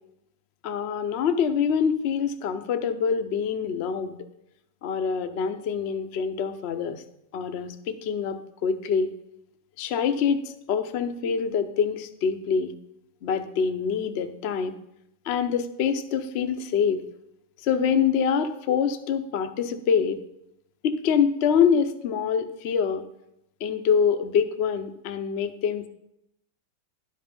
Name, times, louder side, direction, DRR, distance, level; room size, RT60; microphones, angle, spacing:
voice 1, 0.6-4.2 4.8-7.0 7.3-9.1 9.8-12.7 13.2-14.7 15.3-17.0 17.6-20.2 20.8-23.0 23.6-25.9, left 7 dB, 65° left, 8 dB, 0.6 m, -25 dB
11.0 x 5.5 x 5.2 m, 0.82 s
omnidirectional pair, 1.9 m